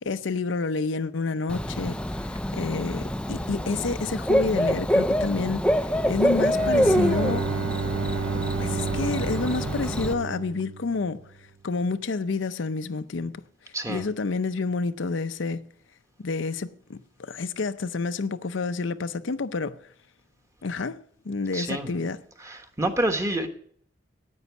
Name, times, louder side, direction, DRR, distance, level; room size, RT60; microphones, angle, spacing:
voice 1, 0.0-2.0 2.5-7.5 8.6-11.2 11.6-13.4 13.9-15.6 16.2-19.8 20.6-21.0 21.2-22.2, left 3 dB, 75° left, 0.6 m, -29 dB
Bird / Cricket, 1.5-10.1, equal, 5° left, 0.4 m, -26 dB
Bowed string instrument, 6.3-11.2, right 5 dB, 60° right, 0.8 m, -31 dB
voice 2, 13.7-14.0 21.5-21.9 22.4-23.5, right 1 dB, 15° right, 1.2 m, -28 dB
9.5 x 9.2 x 8.0 m
head